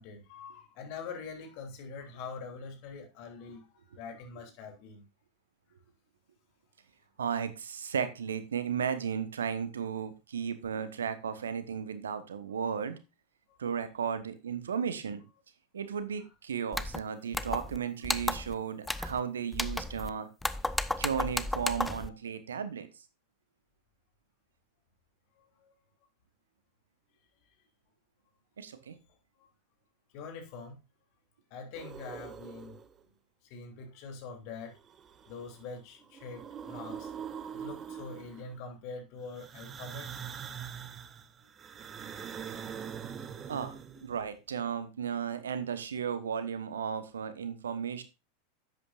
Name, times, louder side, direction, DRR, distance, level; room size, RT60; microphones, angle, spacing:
voice 1, 0.0-5.0 16.2-16.3 22.1-22.2 25.6-25.7 29.4-29.5 30.1-30.7 31.5-32.8 33.4-34.8 35.3-37.1 37.5-40.1, left 4 dB, 50° left, 2 dB, 3.0 m, -44 dB
voice 2, 7.2-13.0 13.6-15.2 15.7-20.3 21.0-22.9 28.6-28.9 43.5-48.0, right 7 dB, 70° right, 12 dB, 1.1 m, -34 dB
sound 1, 16.7-17.0 17.3-17.8 18.0-18.5 18.9-19.2 19.5-20.1 20.4-22.1, left 1 dB, 5° left, 0.6 m, -33 dB
sound 2, 31.7-33.0 34.7-35.7 36.0-38.6 39.3-44.2, right 8 dB, 25° right, 0.8 m, -43 dB
11.0 x 8.3 x 2.5 m, 0.28 s
figure-of-eight pair, 85°, 0 cm